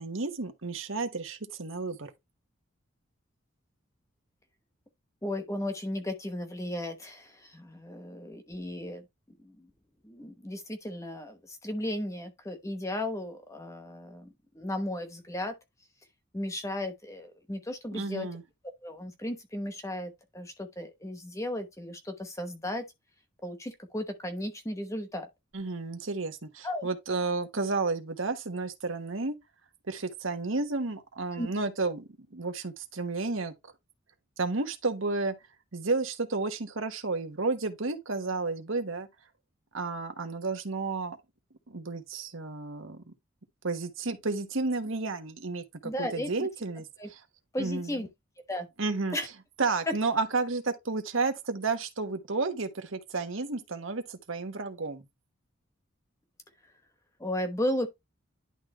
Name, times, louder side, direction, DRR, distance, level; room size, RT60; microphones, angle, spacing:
voice 1, 0.0-2.1 17.9-18.4 25.5-29.4 29.9-33.5 34.4-35.3 35.7-39.1 39.7-41.2 41.7-43.1 43.6-47.2 47.6-48.0 48.8-49.2 49.6-55.0, right 3 dB, 70° right, 1.3 m, -32 dB
voice 2, 5.2-9.1 9.4-9.7 10.0-14.3 14.5-15.6 16.3-18.3 18.8-22.8 23.4-25.3 26.6-26.9 31.4-31.5 45.8-46.5 47.0-47.1 47.5-48.1 48.5-48.7 49.1-49.3 49.9-50.0 57.2-57.9, left 1 dB, 15° left, 1.0 m, -35 dB
11.0 x 3.7 x 3.2 m
head